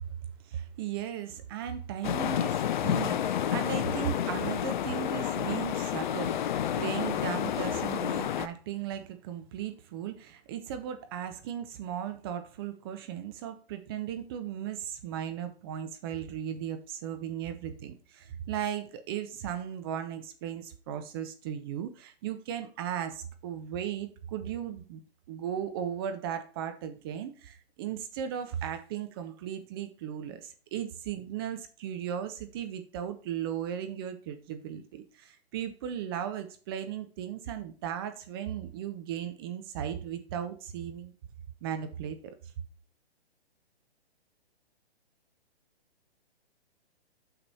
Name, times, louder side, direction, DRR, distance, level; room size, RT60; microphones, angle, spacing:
voice 1, 0.4-25.0 25.3-41.1 41.6-42.3, right 9 dB, 25° right, 0.5 m, -36 dB
sound 1, 2.0-8.5, left 10 dB, 50° left, 0.5 m, -30 dB
8.8 x 5.9 x 2.7 m
figure-of-eight pair, 130°, 32 cm